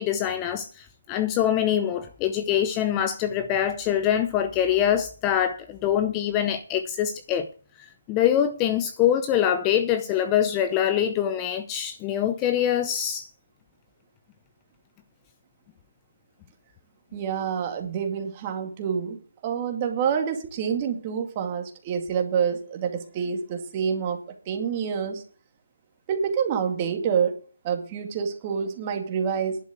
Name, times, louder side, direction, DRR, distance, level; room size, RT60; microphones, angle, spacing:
voice 1, 0.0-7.5 8.1-13.3, left 10 dB, 20° left, 0.6 m, -24 dB
voice 2, 17.1-24.2 24.5-25.2 26.1-27.4 27.6-29.6, right 7 dB, 25° right, 2.4 m, -27 dB
11.0 x 6.3 x 8.0 m
hypercardioid pair, 160°, 0 cm